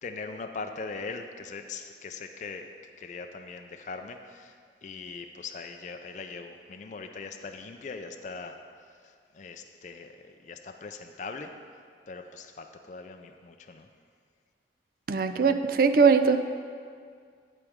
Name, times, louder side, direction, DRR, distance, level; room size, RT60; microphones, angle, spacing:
voice 1, 0.0-2.7 3.0-4.5 4.8-8.6 9.0-11.5 12.1-13.9, left 4 dB, 45° left, 5 dB, 0.4 m, -40 dB
voice 2, 15.1-16.4, right 5 dB, 55° right, 9 dB, 0.4 m, -21 dB
8.5 x 8.0 x 3.6 m, 2.1 s
head